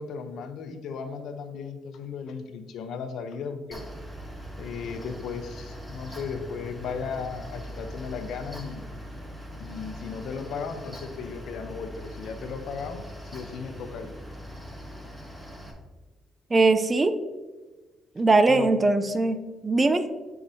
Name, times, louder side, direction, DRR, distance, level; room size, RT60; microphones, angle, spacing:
voice 1, 0.0-3.8 4.6-8.9 9.6-14.1 18.5-18.7, left 5 dB, 75° left, 8 dB, 0.8 m, -36 dB
Mechanical fan, 3.7-15.7, equal, 5° right, 1.4 m, -41 dB
voice 2, 16.5-17.1 18.2-19.4 19.6-20.0, right 3 dB, 25° right, 10 dB, 0.6 m, -20 dB
9.5 x 4.7 x 2.8 m, 1.3 s
cardioid pair, 90°, 0 cm